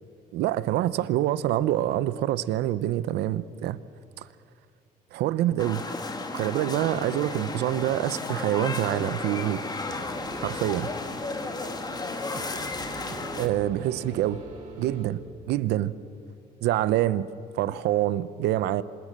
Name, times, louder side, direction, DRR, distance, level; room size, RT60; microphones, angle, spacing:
voice 1, 0.3-3.8 4.2-4.3 5.1-5.8 6.3-9.6 10.4-10.9 13.4-14.4 14.8-15.2 15.5-15.9 16.6-17.2 17.5-18.8, right 13 dB, 80° right, 0.8 m, -26 dB
sound 1, 5.6-13.5, left 3 dB, 25° left, 2.2 m, -33 dB
sound 2, 9.9-15.1, right 2 dB, 50° right, 7.9 m, -43 dB
26.5 x 18.5 x 6.7 m
cardioid pair, 110°, 17 cm